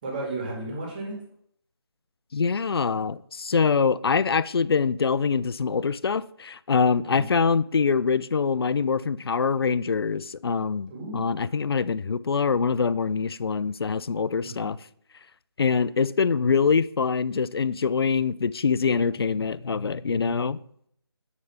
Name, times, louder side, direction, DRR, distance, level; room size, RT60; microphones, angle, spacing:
voice 1, 0.0-1.1 7.0-7.3 10.9-11.4 14.4-14.7, right 2 dB, 20° right, 1.9 m, -34 dB
voice 2, 2.3-14.8 15.6-20.6, left 5 dB, 65° left, 0.4 m, -24 dB
9.6 x 3.4 x 5.7 m
figure-of-eight pair, 165°, 14 cm